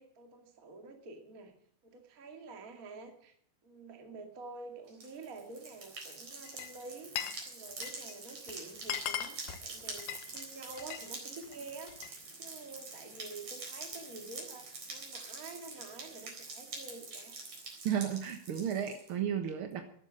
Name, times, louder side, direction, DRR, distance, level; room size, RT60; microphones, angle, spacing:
voice 1, 0.0-1.6 1.8-3.3 3.6-17.4, right 3 dB, 25° right, 4 dB, 2.2 m, -48 dB
sound 1, 4.9-19.1, right 3 dB, 45° right, 5.1 m, -46 dB
Glass, 6.4-7.4 7.7-8.1 8.5-8.6 8.8-11.1 11.4-12.2, left 11 dB, 70° left, 2.5 m, -39 dB
voice 2, 17.8-19.8, right 9 dB, 65° right, 6 dB, 1.3 m, -33 dB
14.5 x 12.0 x 6.4 m, 0.62 s
omnidirectional pair, 4.3 m